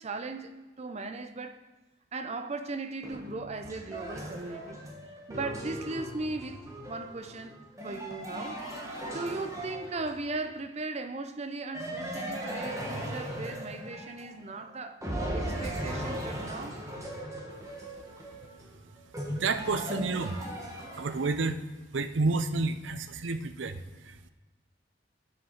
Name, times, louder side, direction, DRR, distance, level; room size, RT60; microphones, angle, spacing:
voice 1, 0.0-1.6 2.1-4.8 5.3-7.5 7.8-8.6 9.1-15.0 15.3-16.8, right 3 dB, 35° right, 0.6 m, -38 dB
sound 1, 3.0-10.4 11.7-14.6 15.0-21.5, right 1 dB, 15° right, 1.4 m, -38 dB
voice 2, 19.3-20.4 20.9-21.6 21.9-24.3, right 3 dB, 80° right, 0.6 m, -30 dB
6.8 x 6.5 x 5.7 m
head